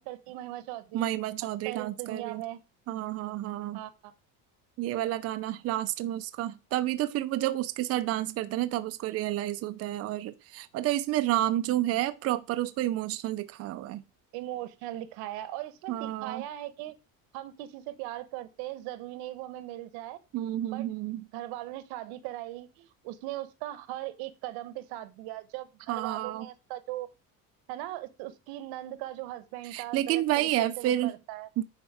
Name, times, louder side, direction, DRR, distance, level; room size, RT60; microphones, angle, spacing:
voice 1, 0.0-1.0 1.6-2.6 3.7-4.1 14.3-16.9 17.3-20.2 20.7-20.9 21.3-27.1 27.7-30.5 30.8-31.5, right 15 dB, 85° right, 1.1 m, -39 dB
voice 2, 0.9-2.4 2.9-3.8 4.8-14.0 15.9-16.4 20.3-21.2 25.9-26.5 29.6-31.1 31.6-31.7, right 14 dB, 40° right, 0.5 m, -30 dB
10.0 x 4.4 x 4.8 m
cardioid pair, 155°, 37 cm